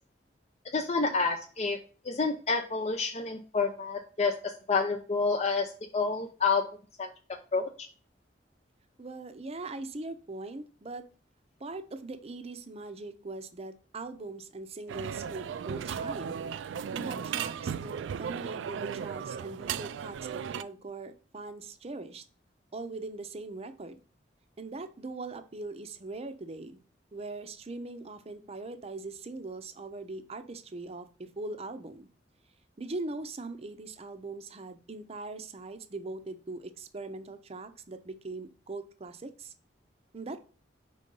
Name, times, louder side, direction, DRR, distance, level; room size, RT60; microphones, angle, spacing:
voice 1, 0.7-1.8 2.0-6.6 7.0-7.1 7.5-7.9, left 4 dB, 35° left, 2 dB, 0.5 m, -29 dB
voice 2, 9.0-11.1 11.6-16.4 16.9-22.2 22.7-24.0 24.6-26.8 27.1-31.1 31.4-32.1 32.8-39.5 40.1-40.4, right 3 dB, 35° right, 9 dB, 0.6 m, -41 dB
sound 1, 14.9-20.6, right 7 dB, 90° right, 0.3 m, -36 dB
5.3 x 3.7 x 5.3 m, 0.38 s
head